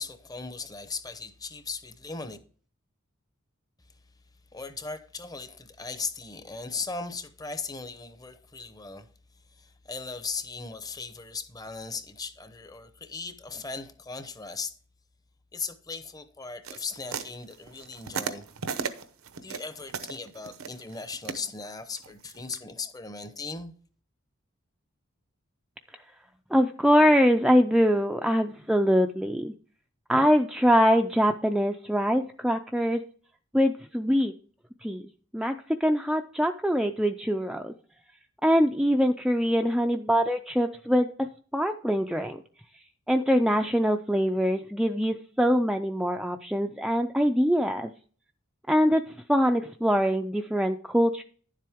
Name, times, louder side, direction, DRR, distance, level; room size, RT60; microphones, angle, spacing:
voice 1, 0.0-2.4 4.5-9.1 9.5-14.7 15.5-18.5 19.4-23.7, left 4 dB, 20° left, 0.7 m, -38 dB
sound 1, 16.6-22.6, right 5 dB, 80° right, 0.8 m, -36 dB
voice 2, 26.5-29.5 30.1-33.0 33.5-34.3 34.8-35.1 35.3-37.7 38.4-41.3 41.5-42.4 43.1-47.9 48.7-51.2, equal, 5° right, 0.3 m, -23 dB
10.5 x 7.5 x 3.5 m
head